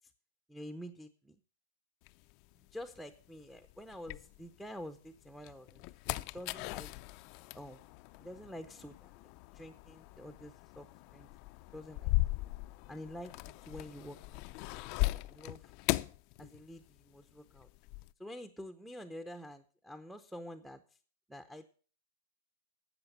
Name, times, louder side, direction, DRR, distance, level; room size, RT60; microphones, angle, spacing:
voice 1, 0.5-1.4 2.7-6.9 7.5-7.8 8.2-11.3 11.7-12.1 12.9-13.4 13.6-14.4 15.1-15.7 16.4-17.7 18.2-20.8 21.3-21.6, equal, ahead, 7 dB, 0.6 m, -48 dB
sound 1, 2.1-4.8 5.3-17.0 17.3-18.1, left 20 dB, 40° left, 0.4 m, -38 dB
13.0 x 8.0 x 5.4 m, 0.41 s
supercardioid pair, 145°, 0 cm